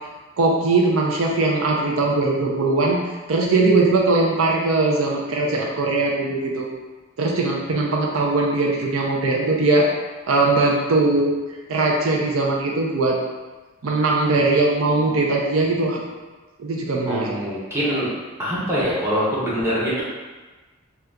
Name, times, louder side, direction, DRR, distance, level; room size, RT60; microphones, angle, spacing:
voice 1, 0.4-3.0 3.3-6.7 7.2-9.9 10.3-11.3 11.7-13.2 13.8-16.0 16.6-17.3, right 3 dB, 70° right, -1 dB, 0.4 m, -20 dB
voice 2, 17.1-18.1 18.4-20.0, equal, 10° right, -9 dB, 0.8 m, -23 dB
2.8 x 2.3 x 3.5 m, 1.3 s
head